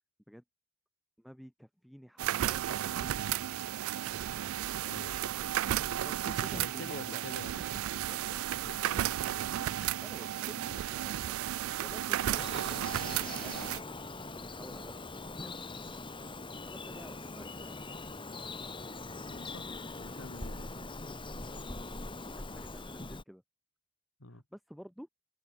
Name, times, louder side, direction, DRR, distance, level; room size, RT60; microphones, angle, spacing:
voice 1, 1.2-3.4 6.0-7.3 9.6-11.2 11.8-16.0 16.4-17.8 21.4-23.4 24.3-25.1, equal, ahead, 2.2 m, -51 dB
sound 1, 2.2-13.8, right 11 dB, 85° right, 0.3 m, -33 dB
voice 2, 4.9-5.3 6.5-7.6 8.6-9.5 19.3-19.7 20.0-20.7 24.2-24.4, left 2 dB, 70° left, 2.9 m, -47 dB
Bird vocalization bird call bird song, 12.3-23.2, left 2 dB, 25° left, 2.4 m, -42 dB
head